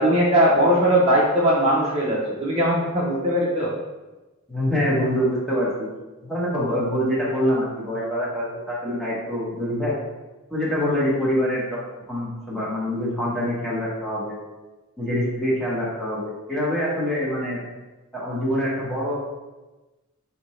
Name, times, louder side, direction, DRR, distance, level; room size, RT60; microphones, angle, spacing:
voice 1, 0.0-3.7, equal, 30° right, -6 dB, 0.6 m, -19 dB
voice 2, 4.5-5.7 6.2-10.0 10.5-11.8 12.1-14.3 15.0-17.6 18.1-19.1, equal, ahead, -7 dB, 1.0 m, -25 dB
4.2 x 2.8 x 3.1 m, 1.1 s
head